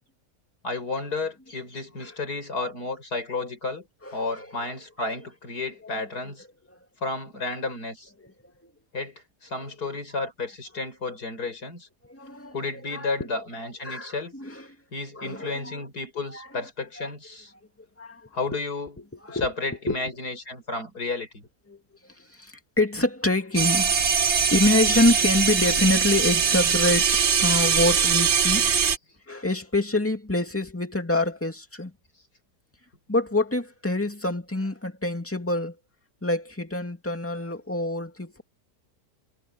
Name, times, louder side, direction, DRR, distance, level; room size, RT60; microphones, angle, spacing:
voice 1, 0.6-3.9 4.1-6.4 7.0-8.1 8.9-11.9 12.5-14.3 14.9-17.5 18.3-19.0 19.3-21.4, left 3 dB, 65° left, 6.2 m, -32 dB
voice 2, 4.0-4.5 5.8-6.2 6.7-6.8 8.2-8.7 12.1-12.6 12.9-13.5 13.8-14.8 15.1-15.8 16.3-16.7 17.0-17.1 18.0-18.6 19.0-19.5 19.9-20.2 21.7-23.9 24.2-28.7 29.3-31.9 33.1-35.8 36.2-38.4, left 2 dB, 10° left, 2.3 m, -27 dB
sound 1, 23.6-29.0, right 6 dB, 45° right, 1.2 m, -22 dB
omnidirectional pair, 1.8 m